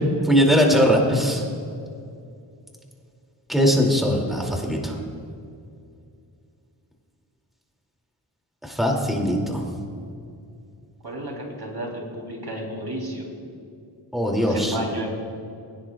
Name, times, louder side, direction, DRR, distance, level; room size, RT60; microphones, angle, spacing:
voice 1, 0.2-1.4 3.5-5.0 8.6-9.6 14.1-14.7, equal, ahead, 0 dB, 2.4 m, -20 dB
voice 2, 11.0-13.3 14.4-15.1, equal, 55° right, -1 dB, 3.2 m, -32 dB
21.5 x 10.0 x 2.3 m, 2.5 s
cardioid pair, 50°, 46 cm